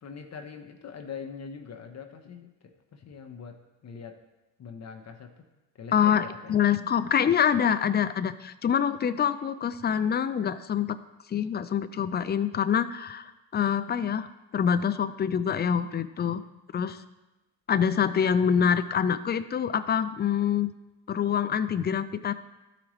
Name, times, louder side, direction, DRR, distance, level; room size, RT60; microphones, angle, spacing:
voice 1, 0.0-4.2 4.6-5.3 5.7-6.6, left 6 dB, 40° left, 5 dB, 0.9 m, -43 dB
voice 2, 5.9-11.0 11.3-14.3 14.5-16.4 16.7-17.0 17.7-20.7 21.1-22.3, left 8 dB, 25° left, 12 dB, 0.5 m, -25 dB
12.5 x 4.9 x 3.1 m, 1.0 s
supercardioid pair, 75°, 40 cm